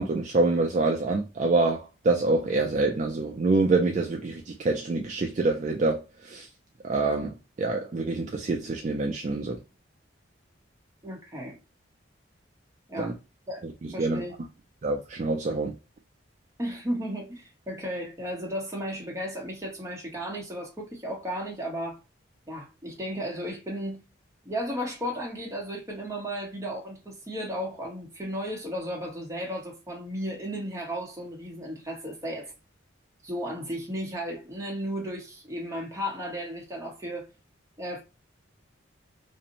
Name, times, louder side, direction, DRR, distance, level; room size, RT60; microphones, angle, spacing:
voice 1, 0.0-6.5 6.8-9.6 13.0-13.1 14.0-14.2 14.8-15.7, right 3 dB, 40° right, 0.3 m, -26 dB
voice 2, 11.0-11.6 12.9-13.1 13.5-13.6 13.9-14.4 16.6-22.0 22.5-24.0 24.4-32.5 33.2-37.3 37.8-38.0, equal, 15° right, 0.8 m, -34 dB
2.6 x 2.1 x 2.7 m
head